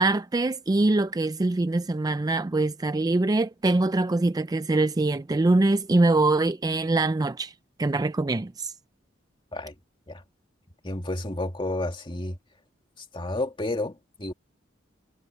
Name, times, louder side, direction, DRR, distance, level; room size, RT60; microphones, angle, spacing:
voice 1, 0.0-7.5 7.8-8.7, right 2 dB, 20° right, 0.4 m, -23 dB
voice 2, 10.8-12.4 13.0-14.3, left 2 dB, 25° left, 2.2 m, -31 dB
head